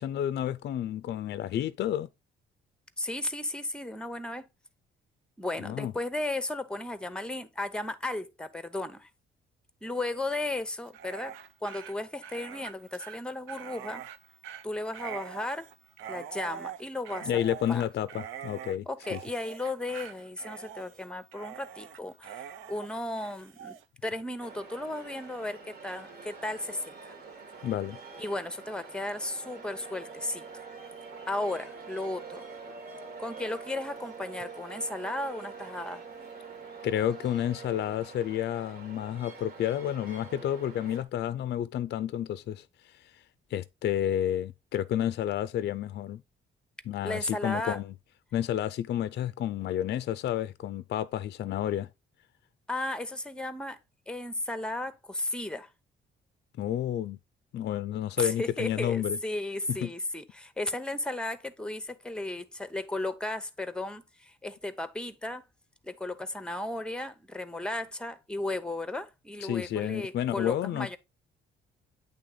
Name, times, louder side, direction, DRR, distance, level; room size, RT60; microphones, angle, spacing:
voice 1, 0.0-2.1 5.6-5.9 17.3-18.9 19.1-19.2 27.6-28.0 36.8-43.1 43.5-46.2 46.9-47.9 48.3-51.9 56.6-57.2 57.5-59.2 59.7-59.9 69.4-71.0, left 11 dB, 60° left, 0.4 m, -30 dB
voice 2, 3.0-4.5 5.4-9.1 9.8-11.3 11.6-14.0 14.6-15.7 16.1-17.3 17.7-17.9 18.9-27.1 28.2-30.5 31.3-32.5 33.2-36.0 47.0-47.8 52.7-53.8 54.1-55.7 58.2-65.4 65.8-71.0, left 2 dB, 5° left, 0.8 m, -35 dB
Dog, 10.8-23.8, right 9 dB, 85° right, 0.6 m, -44 dB
sound 1, 24.4-41.0, right 4 dB, 50° right, 1.6 m, -47 dB
sound 2, 29.4-38.1, right 5 dB, 30° right, 0.9 m, -47 dB
8.5 x 3.4 x 3.8 m
cardioid pair, 90°, 20 cm